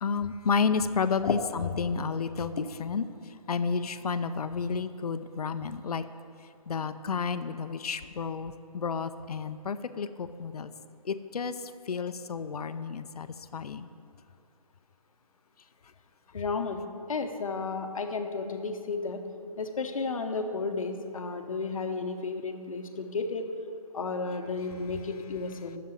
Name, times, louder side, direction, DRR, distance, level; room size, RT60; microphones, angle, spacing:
voice 1, 0.0-3.0 3.5-6.0 6.7-10.7 11.1-11.5 11.9-13.3 13.5-13.9, left 5 dB, 80° left, 11 dB, 0.6 m, -31 dB
voice 2, 16.3-16.8 17.1-19.2 19.6-23.4 23.9-25.8, left 4 dB, 60° left, 6 dB, 0.9 m, -33 dB
7.5 x 6.9 x 7.6 m, 2.5 s
hypercardioid pair, 175°, 19 cm